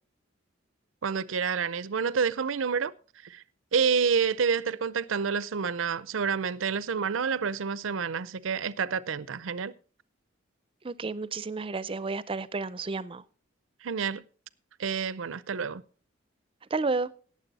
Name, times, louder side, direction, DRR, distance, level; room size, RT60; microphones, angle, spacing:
voice 1, 1.0-2.9 3.2-3.4 3.7-9.7 13.8-14.2 14.8-15.8, right 6 dB, 90° right, 0.6 m, -28 dB
voice 2, 10.8-13.2 16.7-17.1, right 3 dB, 25° right, 0.5 m, -31 dB
18.0 x 7.5 x 4.1 m
head